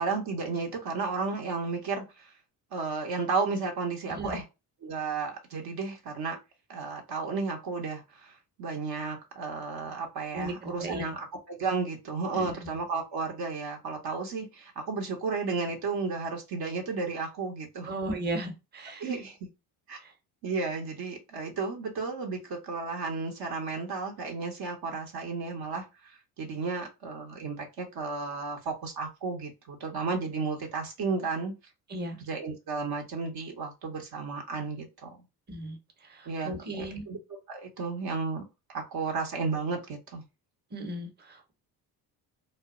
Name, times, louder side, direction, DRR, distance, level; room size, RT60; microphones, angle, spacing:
voice 1, 0.0-2.3 2.7-4.4 4.8-6.4 6.7-17.9 19.0-19.4 19.9-20.0 20.4-31.5 32.2-35.2 36.3-36.5 36.8-37.2 37.5-38.4 38.7-40.2, right 4 dB, 60° right, 0.8 m, -33 dB
voice 2, 4.1-4.4 10.3-11.0 12.3-12.5 17.9-19.1 20.0-20.1 31.9-32.2 35.5-35.8 36.0-37.0 40.7-41.5, right 1 dB, 25° right, 0.8 m, -36 dB
2.1 x 2.0 x 3.6 m
supercardioid pair, 65°, 41 cm